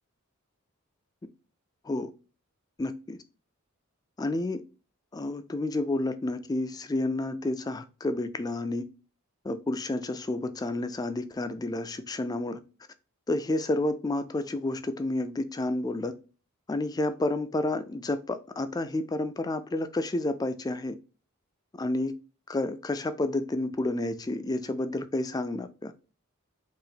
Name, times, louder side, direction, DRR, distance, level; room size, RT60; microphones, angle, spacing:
voice 1, 2.8-3.2 4.2-4.6 5.1-8.8 9.4-12.6 13.3-16.1 16.7-21.0 21.7-22.1 22.5-25.9, left 2 dB, 20° left, 0.3 m, -30 dB
4.8 x 2.5 x 2.7 m
head